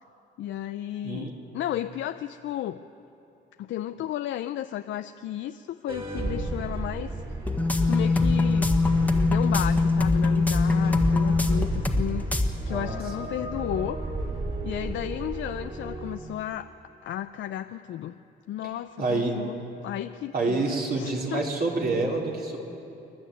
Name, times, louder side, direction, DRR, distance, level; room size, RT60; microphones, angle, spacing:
voice 1, 0.4-1.3 1.5-2.8 3.6-7.1 7.8-8.7 9.2-14.0 14.6-16.7 17.0-18.2 18.5-19.6 19.8-21.4, left 12 dB, 70° left, 9 dB, 0.6 m, -33 dB
voice 2, 1.0-1.3 12.7-13.3 19.0-19.3 20.3-22.6, right 3 dB, 50° right, -1 dB, 3.9 m, -28 dB
sound 1, 5.9-16.2, right 2 dB, 25° right, 4.2 m, -33 dB
sound 2, 7.4-12.0 12.3-12.5, left 3 dB, 10° left, 1.7 m, -22 dB
28.0 x 11.5 x 9.3 m, 2.9 s
cardioid pair, 90°, 20 cm